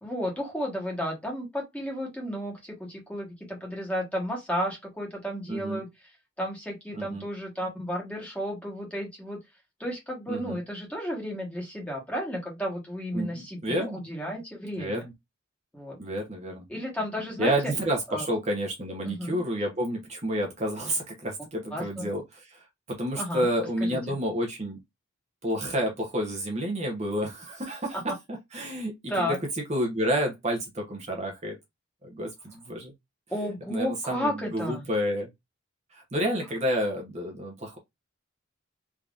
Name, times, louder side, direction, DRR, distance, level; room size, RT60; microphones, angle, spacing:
voice 1, 0.0-5.9 6.4-9.4 9.8-15.0 15.7-16.0 16.7-17.7 18.1-18.3 19.0-19.4 21.7-22.1 23.2-23.5 23.8-24.2 29.1-29.4 33.3-34.8, equal, 5° left, 1.2 m, -33 dB
voice 2, 5.5-5.8 6.9-7.2 10.3-10.6 13.1-14.0 14.8-15.1 16.0-16.6 17.4-24.8 25.4-28.0 28.5-29.3 29.7-31.6 32.1-32.9 33.7-35.3 35.9-37.8, equal, 35° right, 0.8 m, -30 dB
3.5 x 2.8 x 2.4 m
head